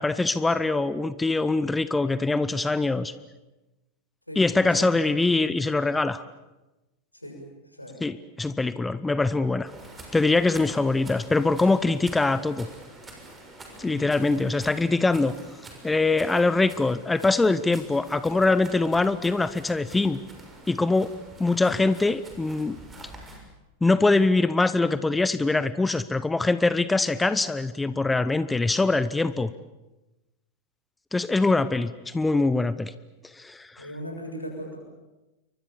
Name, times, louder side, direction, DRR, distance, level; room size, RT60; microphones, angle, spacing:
voice 1, 0.0-3.1 4.4-6.3 8.0-9.7 10.1-12.7 13.8-15.3 15.8-20.2 20.7-21.1 21.4-22.8 23.8-29.5 31.1-32.9 33.4-33.9, left 3 dB, 10° left, 16 dB, 0.8 m, -23 dB
voice 2, 4.3-5.0 7.1-8.0 13.8-14.1 33.8-34.8, equal, 85° left, 1 dB, 6.9 m, -38 dB
sound 1, 9.7-23.4, right 2 dB, 15° right, 6.4 m, -46 dB
29.0 x 24.0 x 7.2 m, 1.0 s
figure-of-eight pair, 90°, 0 cm